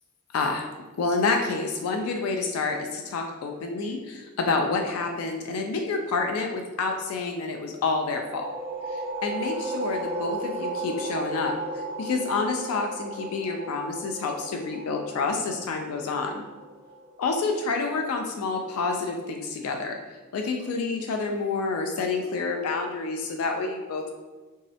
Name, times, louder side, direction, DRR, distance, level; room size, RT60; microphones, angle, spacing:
voice 1, 0.3-0.7 1.0-8.5 8.9-16.4 17.2-20.0 20.3-24.1, left 4 dB, 70° left, 3 dB, 0.3 m, -28 dB
sound 1, 8.1-17.5, right 2 dB, 10° right, 0.8 m, -35 dB
3.5 x 2.0 x 2.7 m, 1.3 s
head